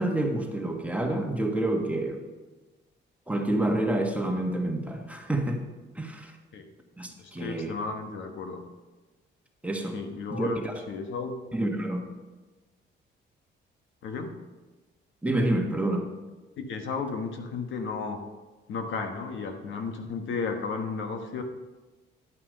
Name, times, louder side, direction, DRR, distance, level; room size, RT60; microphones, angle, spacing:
voice 1, 0.0-2.2 3.3-5.7 5.9-6.3 7.0-7.7 9.6-10.0 10.3-10.7 11.5-12.1 15.2-16.1, right 1 dB, 5° right, 2 dB, 1.5 m, -28 dB
voice 2, 7.2-8.6 9.9-11.4 14.0-14.4 16.6-18.2 18.7-21.4, left 4 dB, 75° left, 5 dB, 1.2 m, -34 dB
11.0 x 5.7 x 6.6 m, 1.2 s
cardioid pair, 90°, 20 cm